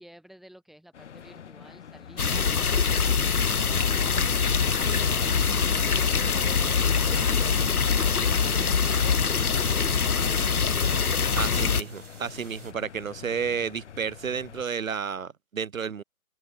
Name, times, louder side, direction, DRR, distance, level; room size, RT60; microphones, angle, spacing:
voice 1, 0.0-3.2 3.6-10.7, right 1 dB, ahead, 4.6 m, -52 dB
sound 1, 0.9-14.6, left 8 dB, 50° left, 4.8 m, -45 dB
sound 2, 2.2-11.8, left 6 dB, 75° left, 1.5 m, -24 dB
sound 3, 7.2-12.7, right 4 dB, 80° right, 4.1 m, -52 dB
voice 2, 11.4-16.0, right 6 dB, 60° right, 1.8 m, -31 dB
open air
figure-of-eight pair, 145°, 44 cm